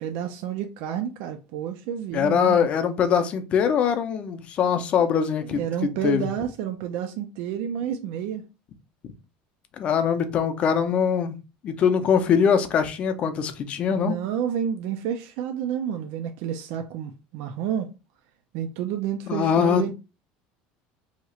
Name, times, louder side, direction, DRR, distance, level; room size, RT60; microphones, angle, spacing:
voice 1, 0.0-2.7 5.4-8.4 13.9-17.9 18.5-19.9, right 9 dB, 65° right, 0.4 m, -30 dB
voice 2, 2.1-6.3 9.8-11.3 11.6-14.1 19.3-19.9, left 7 dB, 35° left, 0.5 m, -22 dB
2.8 x 2.4 x 4.2 m
cardioid pair, 150°, 4 cm